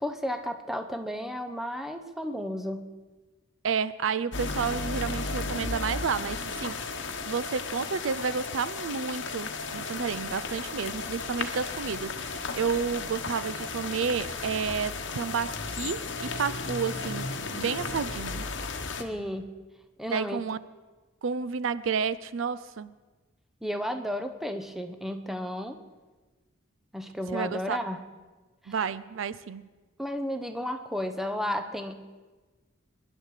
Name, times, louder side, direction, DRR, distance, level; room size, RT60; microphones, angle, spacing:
voice 1, 0.0-2.9 19.0-19.5 20.0-20.4 23.6-25.8 26.9-28.0 28.6-28.7 30.0-32.2, equal, ahead, 6 dB, 0.8 m, -33 dB
voice 2, 3.6-7.0 7.2-18.5 20.1-20.6 21.2-22.9 27.3-27.8 28.7-29.7, right 6 dB, 75° right, 17 dB, 0.5 m, -31 dB
sound 1, 4.3-19.0, left 4 dB, 60° left, 1.2 m, -34 dB
23.0 x 11.0 x 4.8 m, 1.3 s
head